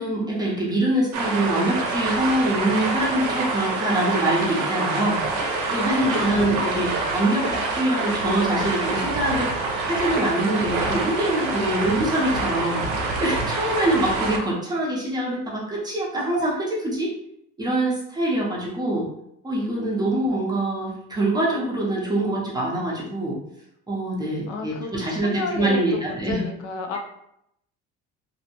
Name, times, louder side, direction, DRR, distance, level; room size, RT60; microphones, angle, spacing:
voice 1, 0.0-5.2 5.7-9.6 9.8-12.9 13.2-17.1 17.6-19.1 19.4-23.4 23.9-26.4, right 1 dB, 15° right, -5 dB, 0.6 m, -24 dB
sound 1, 1.1-14.4, right 3 dB, 70° right, 0.6 m, -26 dB
voice 2, 6.0-6.6 24.5-27.0, left 4 dB, 75° left, 4 dB, 0.6 m, -32 dB
2.6 x 2.1 x 2.8 m, 0.78 s
cardioid pair, 140°, 30 cm